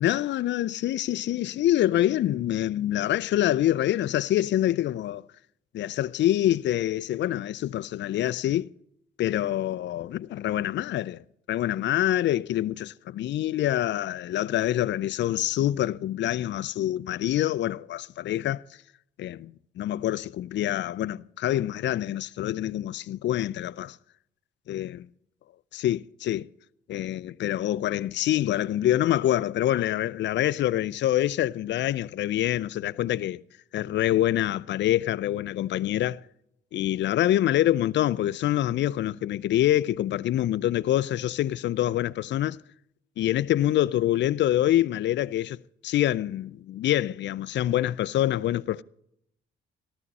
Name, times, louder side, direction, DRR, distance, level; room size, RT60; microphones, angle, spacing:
voice 1, 0.0-5.2 5.7-8.7 9.2-11.2 11.5-18.6 19.2-24.0 24.7-25.1 25.7-26.5 26.9-33.4 33.7-36.2 36.7-42.6 43.2-45.6 45.8-48.8, left 13 dB, 65° left, 0.5 m, -26 dB
13.5 x 13.5 x 4.1 m
cardioid pair, 90°, 20 cm